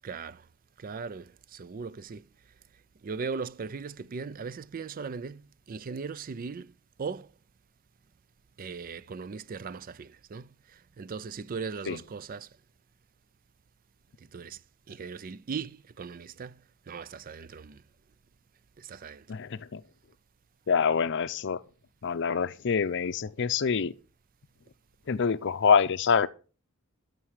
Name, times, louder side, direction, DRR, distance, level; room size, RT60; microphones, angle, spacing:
voice 1, 0.0-0.5 0.8-2.3 3.0-7.3 8.6-12.6 14.2-14.6 14.9-17.8 18.8-19.3, right 5 dB, 40° right, 0.4 m, -39 dB
voice 2, 19.3-19.8 20.7-21.6 22.0-23.9 25.1-26.3, left 6 dB, 60° left, 0.5 m, -26 dB
13.0 x 6.1 x 4.8 m
head